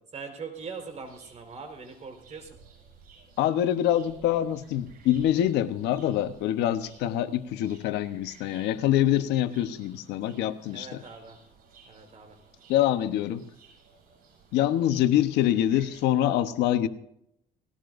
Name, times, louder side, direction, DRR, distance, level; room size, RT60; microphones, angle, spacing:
voice 1, 0.1-2.6 10.7-11.4 11.9-12.4, right 5 dB, 40° right, 5 dB, 4.5 m, -41 dB
sound 1, 0.5-16.1, right 5 dB, 60° right, 7.2 m, -56 dB
voice 2, 3.4-11.0 12.7-13.4 14.5-16.9, left 12 dB, 85° left, 10 dB, 1.1 m, -25 dB
19.5 x 18.5 x 2.6 m, 0.74 s
cardioid pair, 110°, 17 cm